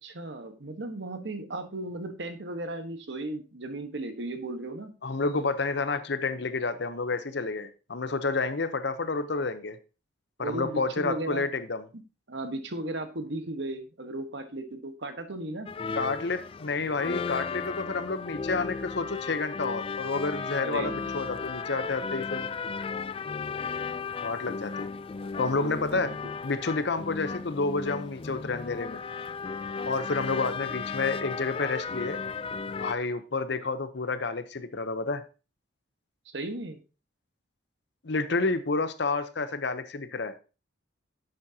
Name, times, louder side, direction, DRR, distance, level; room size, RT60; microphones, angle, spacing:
voice 1, 0.0-4.9 10.4-11.4 12.3-15.7 20.6-21.1 25.2-26.2 36.3-36.8, right 2 dB, 65° right, 1.3 m, -36 dB
voice 2, 5.0-9.8 10.4-11.8 15.9-22.5 24.2-24.9 25.4-26.1 26.4-29.0 29.9-32.2 32.8-35.2 38.0-40.3, left 3 dB, 60° left, 0.8 m, -30 dB
sound 1, 15.7-32.9, left 5 dB, 30° left, 0.3 m, -35 dB
10.5 x 7.7 x 2.8 m
head